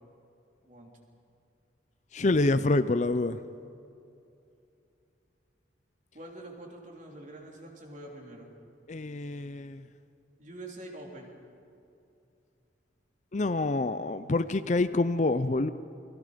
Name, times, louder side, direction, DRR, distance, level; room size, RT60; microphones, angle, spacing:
voice 1, 2.1-3.4 8.9-9.8 13.3-15.7, left 2 dB, 40° left, 12 dB, 0.5 m, -27 dB
voice 2, 6.1-8.5 10.4-11.4, right 1 dB, 40° right, 0 dB, 3.5 m, -45 dB
29.0 x 22.0 x 5.2 m, 2.7 s
head